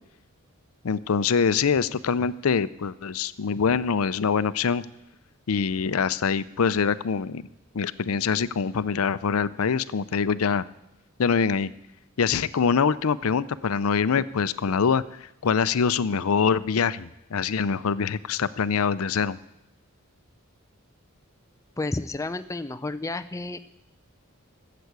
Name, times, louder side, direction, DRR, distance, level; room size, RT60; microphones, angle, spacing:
voice 1, 0.8-4.8 5.5-7.4 7.7-10.6 11.2-11.7 12.2-15.0 15.4-19.4, left 6 dB, 85° left, 16 dB, 0.5 m, -24 dB
voice 2, 21.8-23.6, left 2 dB, 15° left, 9 dB, 0.4 m, -31 dB
13.0 x 7.7 x 8.1 m, 0.85 s
head